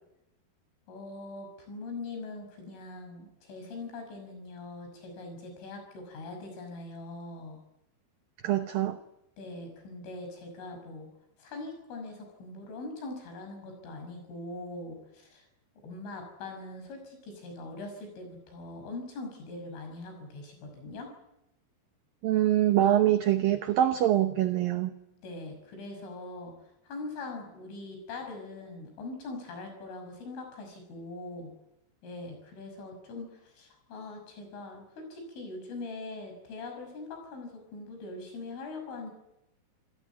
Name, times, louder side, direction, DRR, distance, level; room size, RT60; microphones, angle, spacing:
voice 1, 0.9-7.6 9.4-11.1 11.4-15.5 15.8-21.1 25.2-26.5 26.9-31.5 32.0-39.1, left 2 dB, 80° left, 5 dB, 8.7 m, -42 dB
voice 2, 8.4-9.0 22.2-24.9, right 12 dB, 90° right, 8 dB, 2.0 m, -24 dB
27.5 x 17.0 x 9.4 m, 0.87 s
omnidirectional pair, 5.6 m